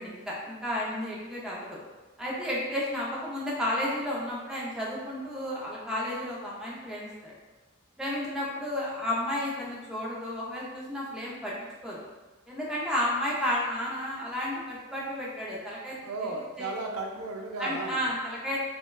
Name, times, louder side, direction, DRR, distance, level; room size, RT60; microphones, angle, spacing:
voice 1, 0.0-1.8 2.2-7.3 8.0-11.5 11.8-12.0 12.5-16.0 16.6-16.7 17.6-18.6, left 1 dB, 5° right, -6 dB, 0.5 m, -32 dB
voice 2, 16.0-18.1, right 3 dB, 85° right, 1 dB, 0.4 m, -35 dB
3.1 x 2.1 x 2.2 m, 1.2 s
head